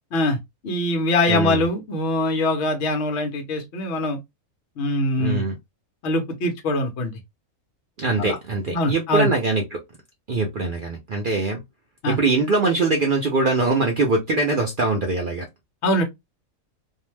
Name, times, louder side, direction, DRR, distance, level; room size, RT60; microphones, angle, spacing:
voice 1, 0.6-4.2 4.8-5.4 6.0-7.2 8.2-8.4 8.7-9.3 12.0-12.2 15.8-16.0, left 1 dB, 55° left, 1.0 m, -23 dB
voice 2, 1.3-1.7 5.2-5.5 8.0-9.8 10.3-11.6 12.1-15.5, right 3 dB, 60° right, 0.5 m, -22 dB
2.7 x 2.1 x 3.0 m
omnidirectional pair, 1.5 m